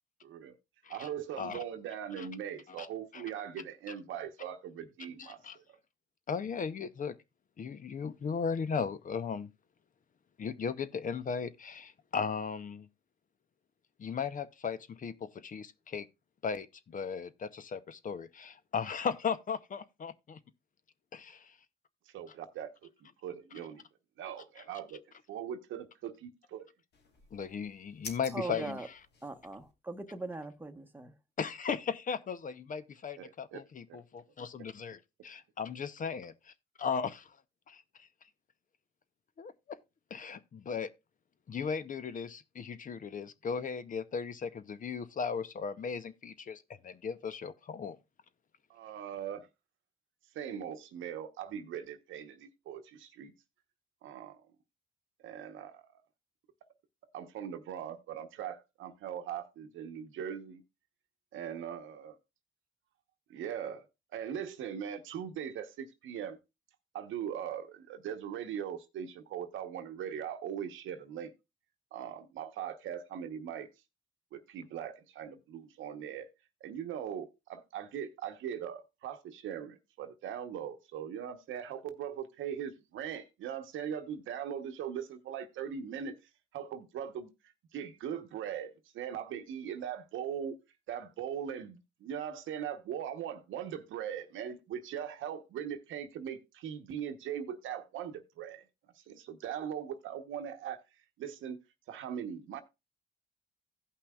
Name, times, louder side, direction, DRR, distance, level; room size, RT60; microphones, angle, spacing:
voice 1, 0.2-0.6 0.9-5.6 22.1-23.8 24.2-25.0 25.3-26.7 33.2-33.6 33.9-34.0 48.7-49.5 50.3-53.3 54.0-54.4 55.2-56.0 57.1-60.6 61.3-62.2 63.3-63.9 64.1-66.4 66.9-71.3 71.9-73.7 74.3-76.3 76.6-86.2 86.5-90.6 90.9-98.6 98.9-100.8 101.2-101.6 101.9-102.6, right 9 dB, 80° right, 1.0 m, -40 dB
voice 2, 5.2-5.6 6.3-7.2 7.6-9.5 10.4-12.9 14.0-16.1 16.4-20.4 21.1-21.6 27.3-29.0 31.4-36.5 36.8-37.2 37.7-38.1 39.4-39.8 40.1-40.9 41.5-48.0, left 6 dB, 40° left, 0.6 m, -37 dB
sound 1, 26.9-29.7, left 4 dB, 60° left, 1.4 m, -50 dB
voice 3, 28.3-28.9 29.2-31.1, right 2 dB, 10° right, 1.0 m, -40 dB
16.5 x 5.6 x 2.3 m
cardioid pair, 90°, 20 cm